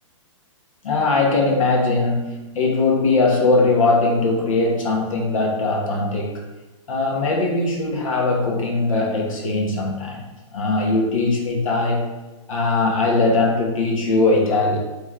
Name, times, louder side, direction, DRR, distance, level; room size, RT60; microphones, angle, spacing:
voice 1, 0.8-6.4 6.9-10.2 10.5-12.1 12.5-14.8, left 3 dB, 85° left, -1 dB, 1.1 m, -20 dB
3.1 x 3.1 x 3.6 m, 1.1 s
hypercardioid pair, 155°, 17 cm